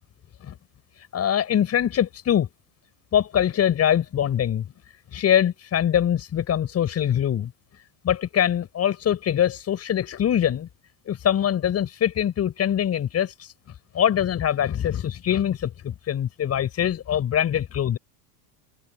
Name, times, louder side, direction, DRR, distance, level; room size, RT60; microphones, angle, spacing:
voice 1, 1.1-2.5 3.1-4.7 5.1-7.5 8.0-10.7 11.1-13.5 13.9-18.0, left 10 dB, 35° left, 7.1 m, -23 dB
supercardioid pair, 135°, 45 cm